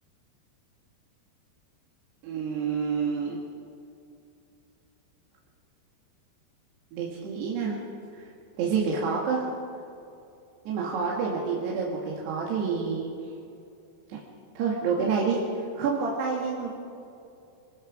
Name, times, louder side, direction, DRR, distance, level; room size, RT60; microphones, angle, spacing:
voice 1, 2.2-3.4 6.9-7.8 8.1-8.3 8.6-9.5 10.7-13.1 14.1-14.2 14.6-16.7, right 5 dB, 75° right, -3 dB, 4.1 m, -28 dB
27.0 x 19.0 x 5.1 m, 2.6 s
omnidirectional pair, 4.9 m